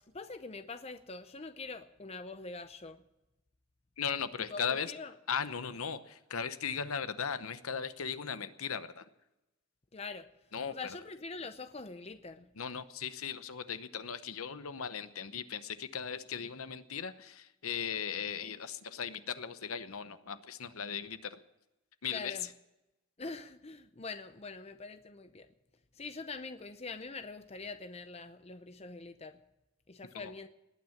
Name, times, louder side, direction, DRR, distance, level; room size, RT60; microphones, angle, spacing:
voice 1, 0.1-3.0 4.5-5.1 9.9-10.3 10.7-12.5 22.1-22.5 23.2-25.5 26.0-29.4 29.9-30.5, left 4 dB, 30° left, 10 dB, 0.7 m, -44 dB
voice 2, 4.0-4.9 5.3-9.1 10.5-11.0 12.6-21.4 22.0-22.5 30.1-30.3, left 7 dB, 75° left, 12 dB, 0.9 m, -37 dB
19.5 x 9.3 x 7.3 m, 0.95 s
head